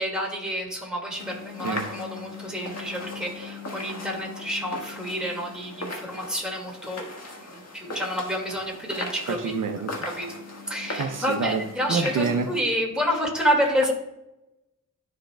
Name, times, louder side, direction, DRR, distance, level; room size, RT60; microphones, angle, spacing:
voice 1, 0.0-7.1 7.4-9.5 10.0-10.3 10.7-13.9, equal, 5° right, -2 dB, 2.0 m, -29 dB
sound 1, 1.2-12.6, left 3 dB, 50° left, 1.5 m, -38 dB
voice 2, 9.3-9.9 11.0-11.6 11.9-12.5, right 5 dB, 70° right, 6 dB, 0.7 m, -27 dB
12.5 x 5.2 x 2.2 m, 0.92 s
wide cardioid pair, 100°, 32 cm